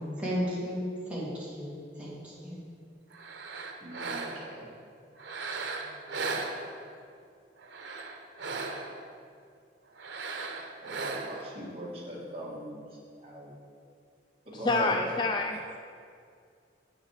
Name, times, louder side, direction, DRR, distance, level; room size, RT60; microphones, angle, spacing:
voice 1, 0.1-2.6, equal, 5° right, -8 dB, 2.3 m, -34 dB
sound 1, 3.1-4.6 5.2-7.0 7.6-9.1 10.0-11.5, right 3 dB, 90° right, 0.8 m, -37 dB
voice 2, 3.8-4.7 10.8-12.8 13.2-13.5 14.5-15.0, equal, 35° right, -6 dB, 2.1 m, -40 dB
voice 3, 14.6-15.8, left 3 dB, 25° left, 4 dB, 0.3 m, -27 dB
8.5 x 6.4 x 5.0 m, 2.3 s
head